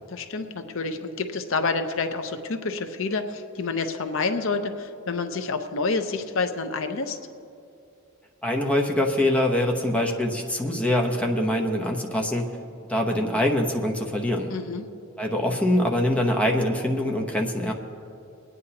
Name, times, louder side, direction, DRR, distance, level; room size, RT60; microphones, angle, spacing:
voice 1, 0.1-7.2 14.5-14.9, left 4 dB, 65° left, 7 dB, 0.7 m, -28 dB
voice 2, 8.4-12.5 12.9-14.5 15.2-17.7, left 1 dB, 5° left, 1 dB, 0.9 m, -24 dB
25.5 x 9.5 x 2.9 m, 2.6 s
head